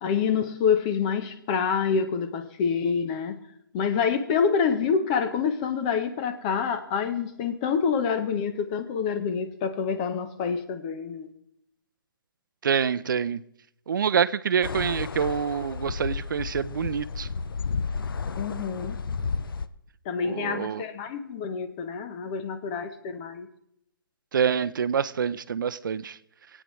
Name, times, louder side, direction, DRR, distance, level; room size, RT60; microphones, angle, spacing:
voice 1, 0.0-3.4 3.7-11.3 18.4-19.0 20.1-23.5, left 6 dB, 20° left, 0.6 m, -27 dB
voice 2, 12.6-13.4 13.9-17.3 20.2-20.8 24.3-26.2, right 7 dB, 60° right, 0.5 m, -26 dB
sound 1, 14.6-19.7, left 5 dB, 70° left, 0.6 m, -32 dB
23.0 x 9.0 x 3.1 m
hypercardioid pair, 170°, 12 cm